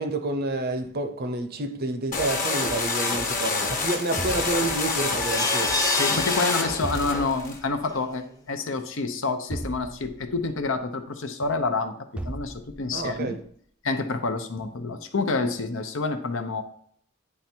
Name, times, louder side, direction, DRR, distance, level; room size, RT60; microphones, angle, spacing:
voice 1, 0.0-5.7 12.9-13.4, right 2 dB, 45° right, 0.7 m, -29 dB
sound 1, 2.1-7.6, left 3 dB, 40° left, 1.3 m, -27 dB
sound 2, 4.2-5.3 6.8-7.8 9.5-10.6 12.2-13.1, right 1 dB, 5° right, 0.4 m, -36 dB
sound 3, 5.2-7.4 7.9-8.0 8.3-8.4, left 2 dB, 15° left, 0.8 m, -29 dB
voice 2, 6.0-13.3 13.8-16.6, left 3 dB, 65° left, 0.8 m, -28 dB
9.6 x 3.4 x 4.4 m
head